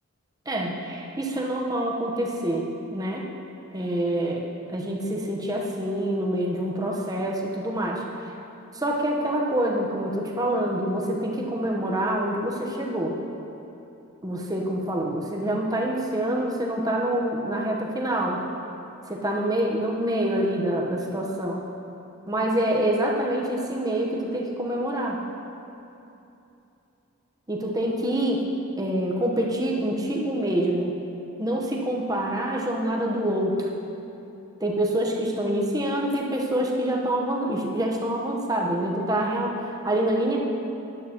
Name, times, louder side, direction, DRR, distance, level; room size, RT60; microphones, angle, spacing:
voice 1, 0.5-3.2 3.7-4.4 4.7-8.3 8.7-13.1 14.2-18.4 19.1-21.7 22.3-25.2 27.5-28.4 28.8-31.0 31.4-33.6 34.6-40.4, right 1 dB, 15° right, -1 dB, 1.0 m, -26 dB
13.5 x 11.0 x 3.0 m, 2.8 s
head